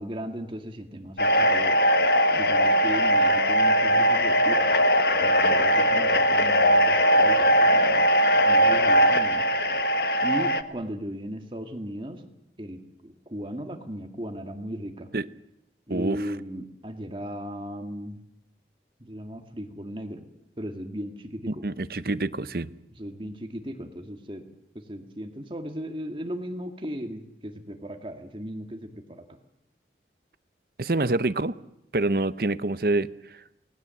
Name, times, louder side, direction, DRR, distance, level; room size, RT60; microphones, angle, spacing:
voice 1, 0.0-1.8 2.3-4.7 5.1-8.1 8.4-9.4 10.2-12.2 12.6-15.1 15.9-18.2 19.0-20.3 20.6-21.6 23.0-24.4 24.7-29.4, equal, 30° right, 5 dB, 2.1 m, -36 dB
sound 1, 1.2-10.6, equal, 60° left, 1.2 m, -20 dB
voice 2, 15.9-16.3 21.5-22.7 30.8-31.6 31.9-33.4, right 2 dB, 55° right, 14 dB, 0.8 m, -26 dB
28.0 x 19.5 x 7.8 m, 0.86 s
head